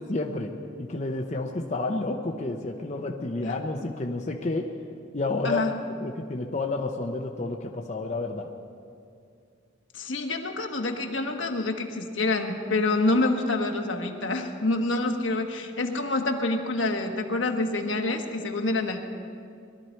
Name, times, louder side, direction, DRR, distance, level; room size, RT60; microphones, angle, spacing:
voice 1, 0.1-0.5 0.8-4.7 5.1-5.6 6.0-8.5, left 2 dB, 35° left, 2 dB, 0.7 m, -30 dB
voice 2, 9.9-19.0, left 2 dB, 75° left, 4 dB, 1.3 m, -27 dB
21.0 x 12.5 x 4.4 m, 2.4 s
head